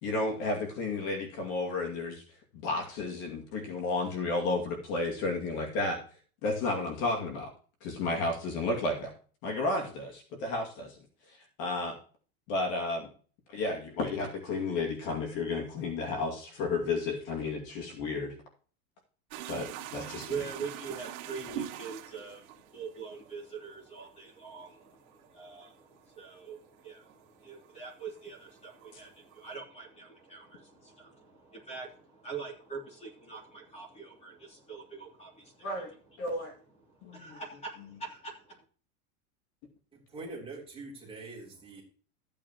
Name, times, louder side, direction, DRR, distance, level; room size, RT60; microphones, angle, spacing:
voice 1, 0.0-2.2 2.6-6.0 6.4-7.5 7.8-9.1 9.4-11.0 11.6-12.0 12.5-13.1 13.5-18.3 19.5-20.3 35.6-35.9 36.2-36.5 37.0-37.4, left 2 dB, 40° left, 2 dB, 2.4 m, -32 dB
sound 1, 19.3-27.8 28.1-29.5, right 13 dB, 60° right, 1.9 m, -44 dB
voice 2, 20.1-36.2 36.9-38.6, right 5 dB, 15° left, 0 dB, 3.2 m, -44 dB
voice 3, 39.9-41.8, right 3 dB, 10° right, -3 dB, 3.2 m, -44 dB
14.0 x 8.8 x 3.0 m, 0.41 s
supercardioid pair, 170°, 45 cm